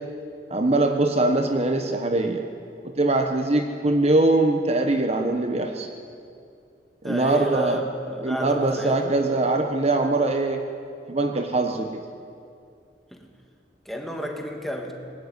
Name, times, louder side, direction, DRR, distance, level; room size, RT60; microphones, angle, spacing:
voice 1, 0.5-2.5 2.8-5.9 7.0-7.8 8.2-10.6 11.1-12.0, right 2 dB, 35° right, 5 dB, 1.3 m, -22 dB
voice 2, 7.0-9.2 13.1-13.3 13.8-15.0, right 1 dB, ahead, 2 dB, 2.5 m, -31 dB
25.5 x 20.0 x 9.6 m, 2.5 s
head